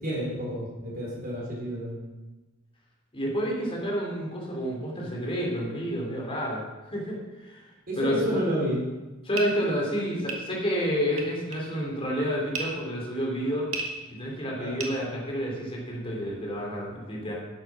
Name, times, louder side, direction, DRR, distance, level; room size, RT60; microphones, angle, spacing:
voice 1, 0.0-1.9 7.9-8.8 14.6-14.8, equal, 45° right, -3 dB, 4.3 m, -30 dB
voice 2, 3.1-6.6 6.9-7.7 7.9-8.6 9.2-13.7 14.1-17.3, equal, 25° left, -2 dB, 3.3 m, -29 dB
sound 1, 9.0-15.7, right 4 dB, 70° right, 1.9 m, -38 dB
10.5 x 8.1 x 6.1 m, 1.1 s
head